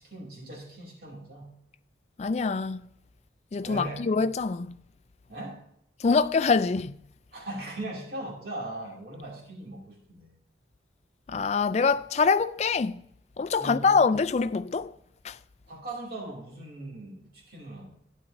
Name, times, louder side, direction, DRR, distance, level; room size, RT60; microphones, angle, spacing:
voice 1, 0.0-1.6 3.6-4.1 5.3-5.6 7.3-10.4 13.6-14.1 15.7-18.0, right 2 dB, 55° right, 2.5 m, -39 dB
voice 2, 2.2-2.9 3.5-4.8 6.0-7.0 11.3-13.0 13.4-14.9 15.2-15.4, left 4 dB, 35° left, 0.3 m, -25 dB
11.5 x 10.0 x 2.6 m
head